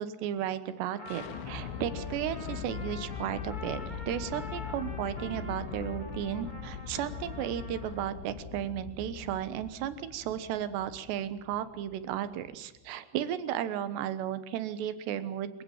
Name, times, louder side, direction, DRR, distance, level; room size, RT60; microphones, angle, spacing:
voice 1, 0.0-15.6, right 10 dB, 75° right, 12 dB, 3.3 m, -34 dB
Trumpet, 0.9-8.2, left 2 dB, 30° left, 0.8 m, -46 dB
sound 1, 1.1-12.9, left 8 dB, 90° left, 3.7 m, -41 dB
28.0 x 17.0 x 7.3 m, 1.0 s
omnidirectional pair, 5.1 m